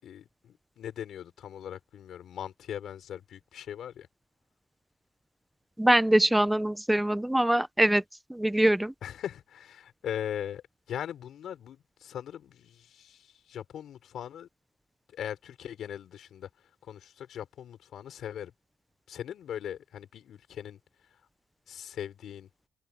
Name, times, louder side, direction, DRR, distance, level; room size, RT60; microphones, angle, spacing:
voice 1, 0.0-4.1 9.0-14.5 15.1-16.5 16.8-18.5 19.1-20.8 21.7-22.5, left 10 dB, 70° left, 4.7 m, -40 dB
voice 2, 5.8-8.0 8.3-8.9, right 1 dB, 5° right, 0.6 m, -23 dB
cardioid pair, 90°, 0 cm